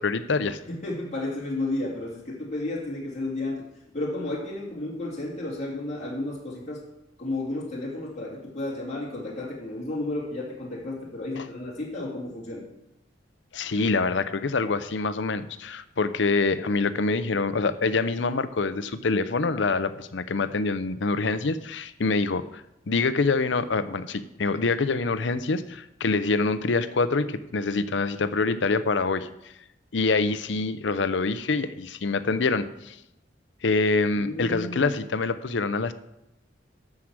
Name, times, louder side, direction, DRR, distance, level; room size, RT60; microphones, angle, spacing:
voice 1, 0.0-0.6 11.4-11.5 13.5-29.3 29.9-33.0 33.6-35.9, left 3 dB, 75° left, 13 dB, 0.7 m, -25 dB
voice 2, 0.7-3.6 3.9-6.8 7.2-12.7 34.2-34.9, left 2 dB, 40° left, -4 dB, 2.8 m, -32 dB
12.0 x 4.9 x 7.5 m, 0.87 s
head